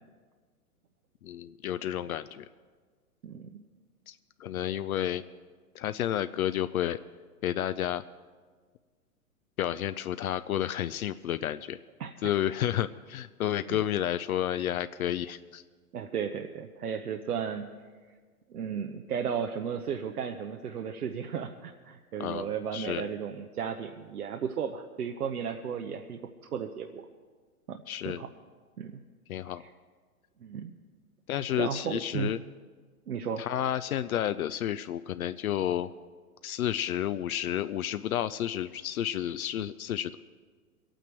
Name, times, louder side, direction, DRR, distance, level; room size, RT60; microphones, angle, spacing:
voice 1, 1.2-2.5 4.1-5.2 5.7-7.0 7.4-8.0 9.6-11.8 12.2-15.6 22.2-23.1 27.9-28.2 29.3-29.6 31.3-32.4 33.4-35.9 36.4-40.2, left 11 dB, 70° left, 12 dB, 0.6 m, -31 dB
voice 2, 12.0-12.3 13.7-13.8 15.9-17.6 18.5-26.2 26.5-27.0 27.7-27.8 28.0-28.3 28.8-28.9 30.4-30.7 31.6-32.3 33.1-33.4, right 7 dB, 80° right, 4 dB, 0.9 m, -34 dB
23.0 x 9.1 x 4.5 m, 1.5 s
hypercardioid pair, 110°, 44 cm